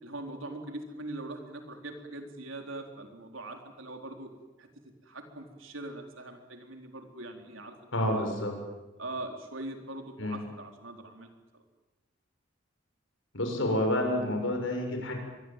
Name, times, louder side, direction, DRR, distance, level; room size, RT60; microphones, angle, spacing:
voice 1, 0.0-4.3 4.6-4.7 5.0-8.3 9.0-11.3 11.5-11.6, right 2 dB, 85° right, 4 dB, 4.1 m, -42 dB
voice 2, 7.9-8.5 10.2-10.4 13.3-15.2, left 1 dB, 75° left, 3 dB, 7.1 m, -29 dB
25.5 x 22.5 x 9.2 m, 1.1 s
head